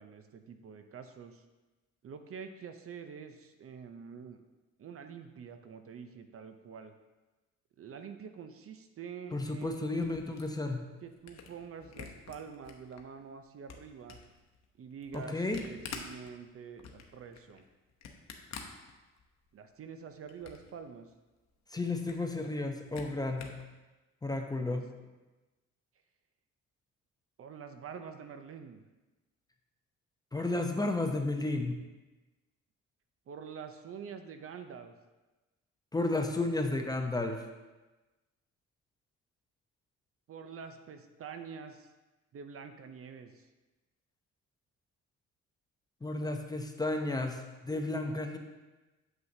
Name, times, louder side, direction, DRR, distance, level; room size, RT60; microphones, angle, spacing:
voice 1, 0.0-1.4 2.0-4.4 4.8-6.9 7.8-10.2 11.0-14.2 14.8-17.6 19.5-21.1 24.5-24.8 27.4-28.8 33.3-34.9 40.3-41.9 42.3-43.5, right 6 dB, 50° right, 8 dB, 0.6 m, -46 dB
voice 2, 9.3-10.8 15.1-15.6 21.7-23.5 24.2-24.9 30.3-31.8 35.9-37.4 46.0-48.4, left 2 dB, 15° left, 4 dB, 0.6 m, -32 dB
Camera, 9.6-13.0 13.4-19.5 19.8-20.8 21.1-21.2 21.4-21.5 21.9-23.7, left 6 dB, 60° left, 0.9 m, -49 dB
7.6 x 5.6 x 2.7 m, 1.1 s
cardioid pair, 90°, 30 cm